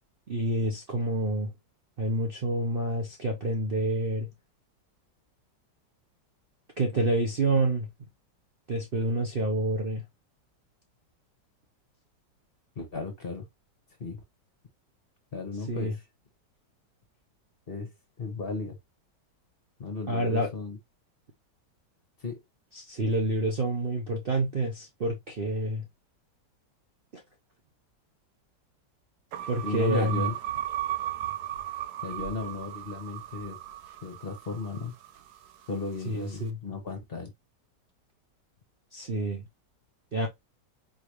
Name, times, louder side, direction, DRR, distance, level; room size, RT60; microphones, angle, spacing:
voice 1, 0.3-1.5 2.0-4.3 6.8-7.9 8.7-10.0 15.7-15.9 20.1-20.5 22.7-25.8 27.1-27.2 29.5-30.3 36.0-36.6 38.9-39.4 40.1-40.3, right 1 dB, 50° right, 0.7 m, -28 dB
voice 2, 12.8-13.4 14.0-14.2 15.3-16.0 17.7-17.9 18.2-18.8 19.8-20.8 22.2-22.4 29.6-30.3 32.0-33.6 34.0-34.9 35.7-37.3, left 3 dB, 35° left, 1.1 m, -35 dB
sound 1, 29.3-35.7, right 12 dB, 70° right, 1.2 m, -36 dB
4.6 x 3.3 x 3.0 m
omnidirectional pair, 1.9 m